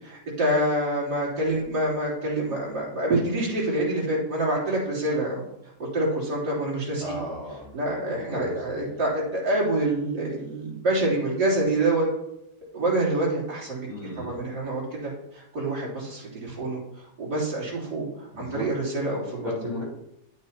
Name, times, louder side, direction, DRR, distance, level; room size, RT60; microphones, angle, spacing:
voice 1, 0.0-5.4 5.8-7.2 7.7-12.1 12.6-13.8 14.2-19.5, right 1 dB, 60° right, -6 dB, 3.9 m, -26 dB
voice 2, 7.0-7.8 8.1-8.9 13.9-14.4 18.3-18.7 19.4-19.8, left 1 dB, 20° left, -6 dB, 4.3 m, -35 dB
10.5 x 9.1 x 2.9 m, 0.84 s
omnidirectional pair, 2.0 m